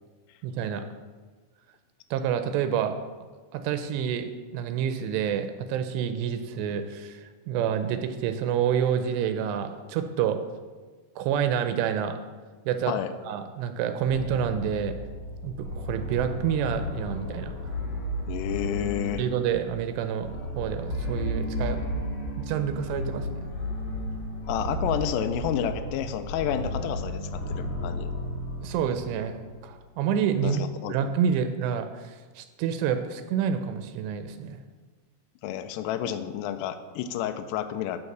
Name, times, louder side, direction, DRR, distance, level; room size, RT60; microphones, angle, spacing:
voice 1, 0.4-0.9 2.1-2.9 3.5-10.4 11.2-12.2 12.7-12.9 13.3-14.9 15.4-17.8 19.2-20.3 20.6-21.8 22.4-23.5 28.6-30.6 30.9-34.6, right 8 dB, 85° right, 8 dB, 2.7 m, -28 dB
sound 1, 14.0-29.7, equal, 60° left, 3.4 m, -33 dB
voice 2, 18.3-19.2 24.5-28.1 30.4-31.0 35.4-38.0, left 10 dB, 85° left, 8 dB, 2.6 m, -30 dB
11.5 x 4.7 x 6.6 m, 1.4 s
omnidirectional pair, 5.0 m